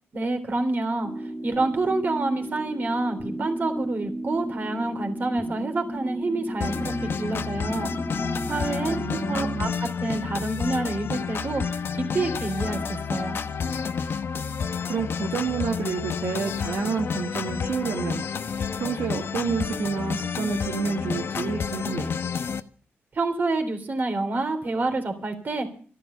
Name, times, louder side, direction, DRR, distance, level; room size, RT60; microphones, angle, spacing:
voice 1, 0.1-1.1 1.4-7.9 8.5-9.7 10.0-11.6 11.9-13.4 23.1-25.7, right 2 dB, 45° right, 5 dB, 3.4 m, -28 dB
sound 1, 1.0-9.7, right 1 dB, ahead, 1.2 m, -34 dB
sound 2, 6.6-22.6, left 6 dB, 60° left, 0.9 m, -30 dB
voice 2, 8.9-9.8 14.9-18.2 18.8-22.1, right 5 dB, 75° right, 2 dB, 1.6 m, -29 dB
13.5 x 11.5 x 6.8 m, 0.43 s
wide cardioid pair, 110°, 4 cm